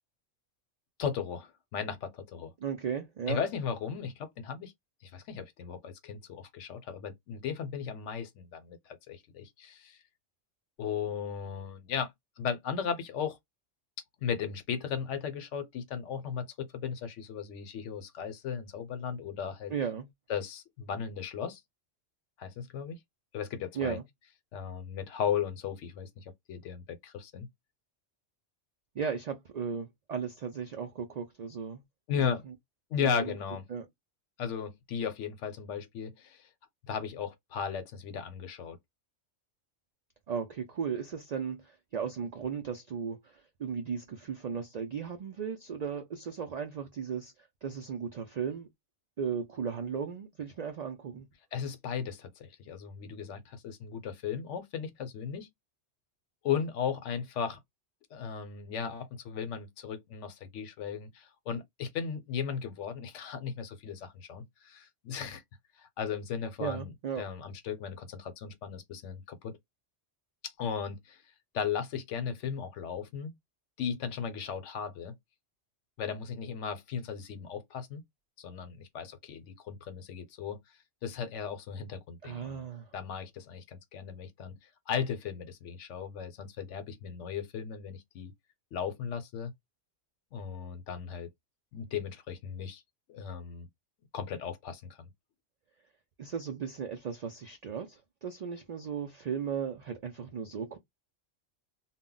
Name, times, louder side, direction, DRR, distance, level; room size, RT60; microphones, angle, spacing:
voice 1, 1.0-2.5 3.3-4.7 5.0-10.0 10.8-12.1 12.4-13.4 14.2-19.7 20.3-21.6 22.4-23.0 23.3-24.0 24.5-27.5 32.1-32.4 32.9-33.6 34.4-36.5 36.9-38.8 51.5-55.5 56.4-57.6 58.1-65.4 65.8-69.6 70.4-71.2 71.5-73.3 73.8-75.1 76.0-78.0 78.4-80.6 81.0-82.6 82.9-84.5 84.9-88.3 88.7-89.5 90.3-91.3 91.7-92.8 93.1-93.7 94.1-94.8, left 7 dB, 80° left, 1.0 m, -36 dB
voice 2, 2.6-3.4 19.7-20.1 23.7-24.0 28.9-31.8 32.1-32.3 33.0-33.3 33.7-33.9 40.3-47.3 47.6-48.7 49.2-51.3 66.6-67.2 82.2-82.9 96.2-100.8, right 7 dB, 85° right, 0.3 m, -36 dB
2.2 x 2.1 x 3.7 m
omnidirectional pair, 1.2 m